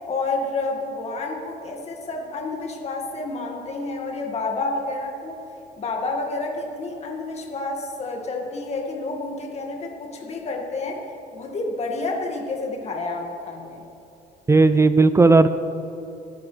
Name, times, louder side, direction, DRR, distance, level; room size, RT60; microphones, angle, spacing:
voice 1, 0.1-5.4 5.8-11.0 11.3-13.8, left 3 dB, 40° left, 0 dB, 2.1 m, -29 dB
voice 2, 14.5-15.5, right 3 dB, 15° right, 11 dB, 0.5 m, -15 dB
26.0 x 11.0 x 3.4 m, 2.9 s
cardioid pair, 110°, 17 cm